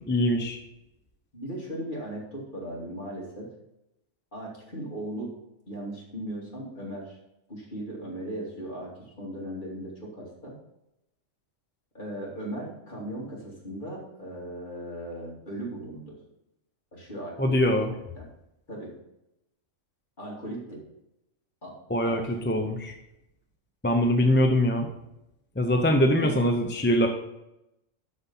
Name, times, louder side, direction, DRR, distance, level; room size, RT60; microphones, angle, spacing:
voice 1, 0.1-0.6 17.4-17.9 21.9-22.9 23.8-24.9 25.6-27.1, left 1 dB, 10° left, 3 dB, 0.6 m, -23 dB
voice 2, 1.3-3.5 4.3-5.3 5.7-7.2 7.5-10.5 11.9-16.2 16.9-17.6 17.9-18.3 18.7-18.9 20.2-20.8 21.6-21.7 22.0-22.8 26.1-26.3, right 1 dB, 40° left, -4 dB, 3.0 m, -37 dB
12.5 x 4.3 x 5.6 m, 0.87 s
omnidirectional pair, 1.3 m